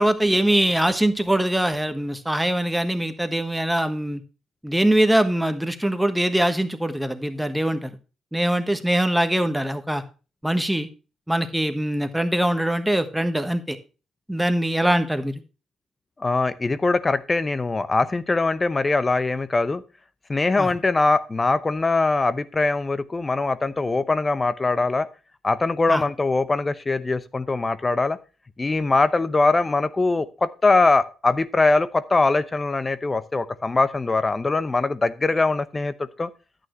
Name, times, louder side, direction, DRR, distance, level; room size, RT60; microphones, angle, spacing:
voice 1, 0.0-4.2 4.6-8.0 8.3-10.0 10.4-10.9 11.3-13.8 14.3-15.4 20.6-20.7 25.9-26.0, right 1 dB, 5° right, 9 dB, 1.3 m, -22 dB
voice 2, 16.2-19.8 20.3-25.1 25.4-28.2 28.6-36.3, left 3 dB, 30° left, 14 dB, 0.7 m, -22 dB
11.0 x 8.9 x 3.1 m, 0.33 s
hypercardioid pair, 55°, 0 cm